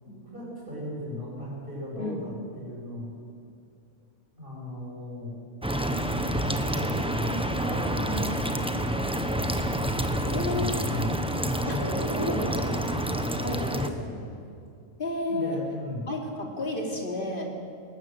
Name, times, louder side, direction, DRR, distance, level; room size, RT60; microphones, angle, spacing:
voice 1, 0.0-3.1 4.3-5.4 6.3-14.3 15.3-16.0, equal, 40° right, -4 dB, 8.1 m, -35 dB
sound 1, 5.6-13.9, right 1 dB, 5° right, 1.0 m, -28 dB
voice 2, 10.3-10.8 11.7-11.8 12.2-12.3 13.4-13.6 15.0-15.6 16.0-17.5, left 2 dB, 40° left, 1 dB, 3.1 m, -31 dB
20.0 x 19.0 x 7.9 m, 2.4 s
omnidirectional pair, 1.4 m